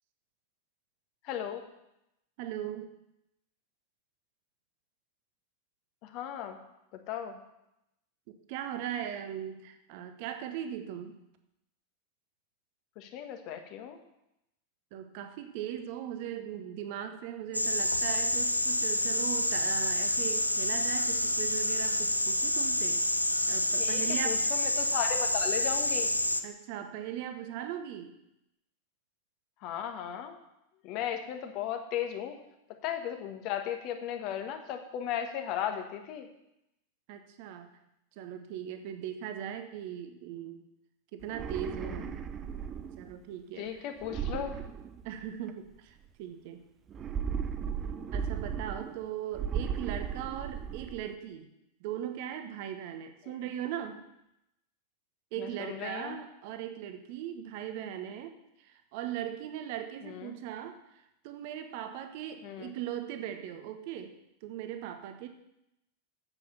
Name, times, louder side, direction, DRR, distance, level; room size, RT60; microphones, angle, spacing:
voice 1, 1.2-1.6 6.0-6.6 7.1-7.4 13.0-14.0 23.8-26.1 29.6-30.4 30.8-32.4 32.8-36.3 41.7-42.1 43.6-44.5 55.4-56.2 60.0-60.4 62.4-62.7, left 9 dB, 40° left, 6 dB, 1.3 m, -36 dB
voice 2, 2.4-2.9 8.3-11.2 14.9-23.0 23.5-24.4 26.4-28.1 37.1-37.7 38.2-40.6 41.1-42.1 43.0-43.9 45.0-46.6 48.1-51.5 51.8-54.0 55.3-64.1 64.4-65.3, right 10 dB, 45° right, 7 dB, 1.0 m, -39 dB
sound 1, 17.5-26.4, left 1 dB, 85° left, 0.5 m, -28 dB
sound 2, 41.2-43.1 44.0-45.5 46.9-49.0 49.3-51.0, right 7 dB, 25° right, 0.6 m, -36 dB
8.3 x 7.7 x 6.9 m, 0.85 s
figure-of-eight pair, 90°, 0 cm